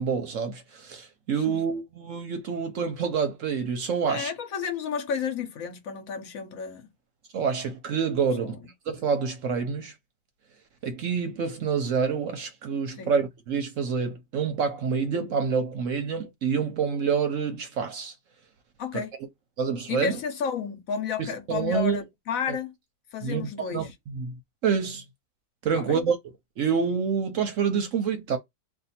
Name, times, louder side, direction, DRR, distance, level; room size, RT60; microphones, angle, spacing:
voice 1, 0.0-4.3 7.3-8.6 8.9-9.9 10.8-18.1 18.9-19.0 19.6-20.1 21.2-22.0 23.2-23.9 24.2-24.3 24.6-25.0 25.6-26.2 26.6-28.4, right 6 dB, 65° right, 0.9 m, -27 dB
voice 2, 4.1-6.9 8.4-8.7 13.0-13.1 18.8-19.1 19.9-22.7 23.1-23.9 25.8-26.0, left 6 dB, 65° left, 1.1 m, -32 dB
2.7 x 2.5 x 4.1 m
omnidirectional pair, 1.7 m